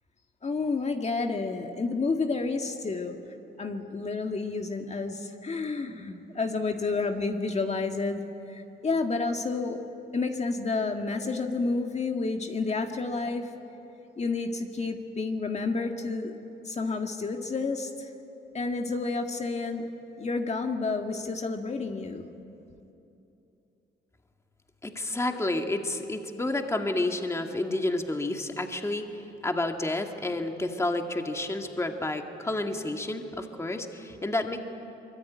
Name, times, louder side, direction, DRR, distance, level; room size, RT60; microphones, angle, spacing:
voice 1, 0.4-3.2 3.6-9.8 10.1-13.5 14.2-16.4 16.6-18.1 18.5-19.9 20.2-22.3, left 3 dB, 35° left, 4 dB, 1.8 m, -30 dB
voice 2, 24.8-34.6, left 2 dB, 15° left, 4 dB, 1.8 m, -30 dB
24.0 x 23.0 x 9.4 m, 2.9 s
cardioid pair, 90°, 20 cm